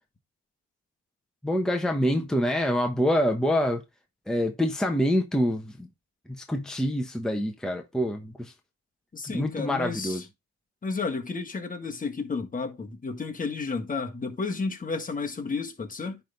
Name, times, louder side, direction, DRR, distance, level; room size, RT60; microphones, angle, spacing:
voice 1, 1.4-3.8 4.3-5.9 6.3-8.5 9.2-10.2, equal, ahead, 1.1 m, -26 dB
voice 2, 9.1-10.2 10.8-16.2, left 4 dB, 25° left, 1.6 m, -32 dB
10.0 x 3.6 x 3.9 m
cardioid pair, 90°, 30 cm